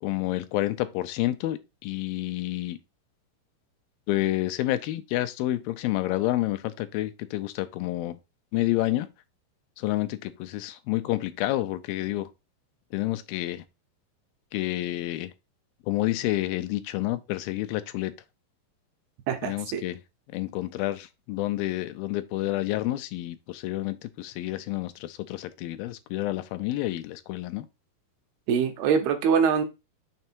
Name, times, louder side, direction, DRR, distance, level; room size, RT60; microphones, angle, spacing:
voice 1, 0.0-2.8 4.1-8.2 8.5-9.1 9.8-12.3 12.9-13.6 14.5-15.3 15.9-18.1 19.4-20.0 20.3-27.7, left 16 dB, 80° left, 2.3 m, -29 dB
voice 2, 19.3-19.8 28.5-29.6, right 6 dB, 90° right, 3.0 m, -24 dB
6.7 x 3.4 x 4.5 m
omnidirectional pair, 4.3 m